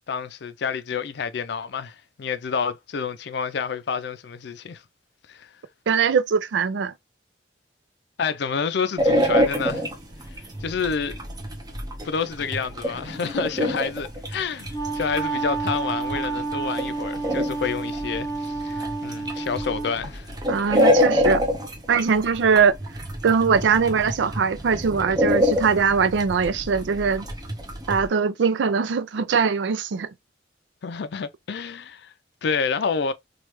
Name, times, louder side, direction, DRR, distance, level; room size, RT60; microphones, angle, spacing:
voice 1, 0.0-4.8 5.3-5.5 8.2-9.8 10.6-11.2 12.0-20.3 30.8-32.1 32.4-33.1, left 5 dB, 65° left, 0.4 m, -29 dB
voice 2, 5.9-6.9 20.5-21.4 21.9-22.8 23.2-27.3 27.9-30.1, right 5 dB, 90° right, 0.4 m, -21 dB
sound 1, 9.0-28.1, equal, 20° right, 0.7 m, -26 dB
Wind instrument woodwind instrument, 14.5-20.0, right 3 dB, 20° left, 0.8 m, -30 dB
3.1 x 2.3 x 3.0 m
head